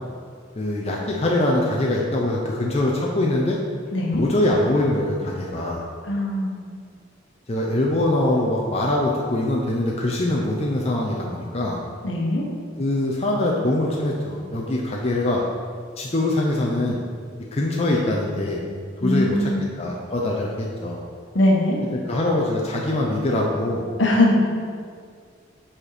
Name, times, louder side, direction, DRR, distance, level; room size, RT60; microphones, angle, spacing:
voice 1, 0.6-3.6 4.1-5.8 7.5-11.8 12.8-15.4 16.0-17.0 17.5-18.6 19.0-19.5 19.8-21.0 22.1-23.8, left 1 dB, 30° left, -2 dB, 0.6 m, -23 dB
voice 2, 3.9-4.2 6.0-6.6 12.0-12.4 19.0-19.6 21.3-21.8 24.0-24.3, left 1 dB, 65° left, -1 dB, 1.2 m, -20 dB
7.3 x 4.4 x 4.9 m, 2.1 s
head